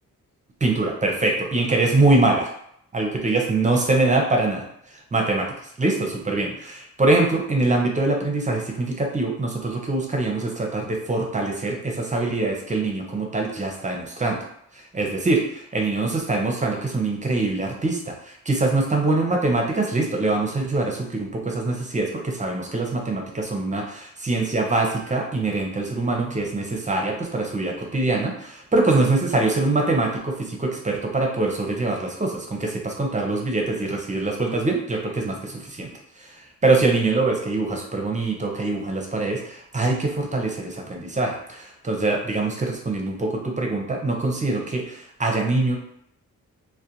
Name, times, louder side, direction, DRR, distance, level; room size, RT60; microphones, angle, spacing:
voice 1, 0.6-2.5 2.9-4.6 5.1-5.5 5.8-14.4 14.9-35.9 36.6-45.8, right 2 dB, 20° right, 1 dB, 0.6 m, -23 dB
2.4 x 2.1 x 2.8 m, 0.71 s
cardioid pair, 70°, 33 cm